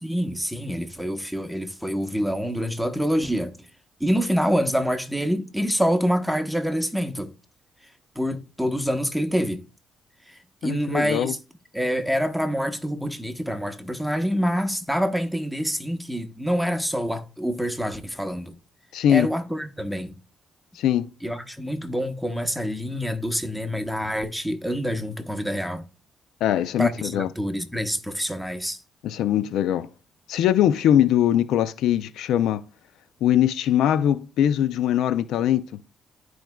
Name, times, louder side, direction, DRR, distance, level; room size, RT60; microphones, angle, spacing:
voice 1, 0.0-3.5 4.0-7.3 8.1-9.6 10.3-11.4 11.7-18.5 19.1-20.1 21.2-25.9 26.8-28.8, equal, ahead, 1.0 m, -26 dB
voice 2, 10.6-11.3 18.9-19.3 20.8-21.1 26.4-27.3 29.0-29.9 30.3-32.6 33.2-35.8, left 11 dB, 85° left, 0.4 m, -21 dB
12.0 x 4.6 x 2.3 m
cardioid pair, 90°, 0 cm